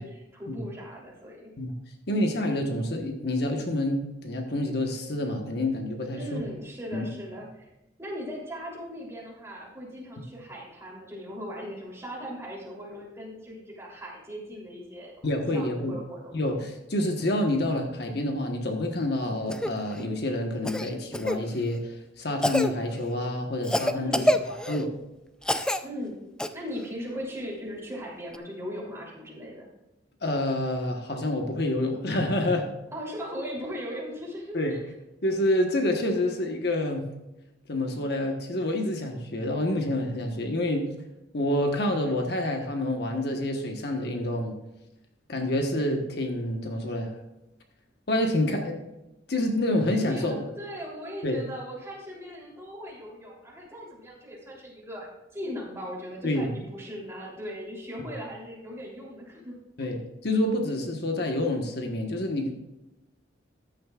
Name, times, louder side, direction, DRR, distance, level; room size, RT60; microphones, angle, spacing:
voice 1, 0.0-1.5 6.1-7.7 8.0-16.3 23.9-24.4 25.8-29.7 32.9-34.8 49.9-59.5 59.8-59.9, equal, 15° right, -4 dB, 3.2 m, -38 dB
voice 2, 2.1-6.5 6.9-7.1 15.2-15.9 16.3-25.0 30.2-32.7 34.5-34.8 35.2-37.0 37.7-40.9 41.3-44.6 45.3-47.1 48.1-48.8 49.3-50.4 51.2-51.4 56.2-56.5 59.8-62.5, left 1 dB, 60° left, 3 dB, 1.3 m, -28 dB
Cough, 19.5-19.7 20.6-21.4 22.4-22.7 23.6-24.8 25.4-25.8 26.4-26.5 28.3-28.4, left 1 dB, 5° left, 0.4 m, -26 dB
14.0 x 10.5 x 2.4 m, 0.92 s
head